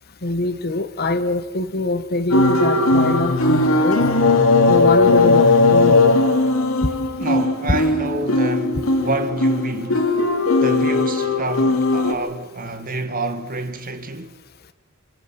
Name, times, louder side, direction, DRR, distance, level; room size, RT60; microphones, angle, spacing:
voice 1, 0.2-4.0 4.7-6.3, left 2 dB, 45° left, 1.2 m, -23 dB
sound 1, 2.3-12.1, left 2 dB, 70° left, 2.8 m, -17 dB
voice 2, 7.2-10.0 10.6-14.4, right 2 dB, 40° right, 1.5 m, -28 dB
28.0 x 26.0 x 5.9 m
head